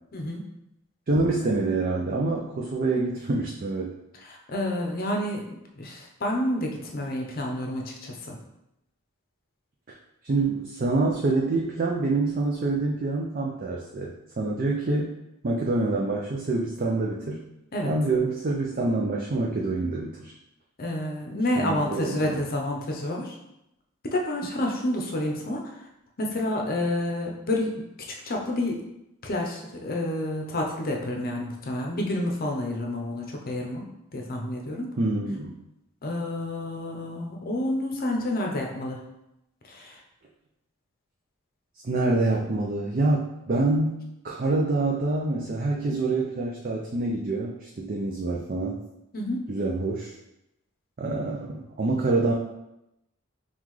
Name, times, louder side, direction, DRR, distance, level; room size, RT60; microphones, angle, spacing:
voice 1, 0.1-0.4 4.2-8.4 17.7-17.9 20.8-23.4 24.0-25.7 26.2-27.7 28.3-28.9 29.2-33.9 34.1-34.9 36.0-39.0 39.7-40.0 49.1-49.5, left 1 dB, 45° left, 1 dB, 0.7 m, -29 dB
voice 2, 1.1-3.9 10.2-15.2 15.4-17.4 17.8-20.3 21.6-22.4 35.0-35.6 41.8-48.8 49.5-50.1 51.0-52.3, right 2 dB, 40° right, -2 dB, 0.4 m, -26 dB
5.5 x 2.4 x 3.1 m, 0.87 s
head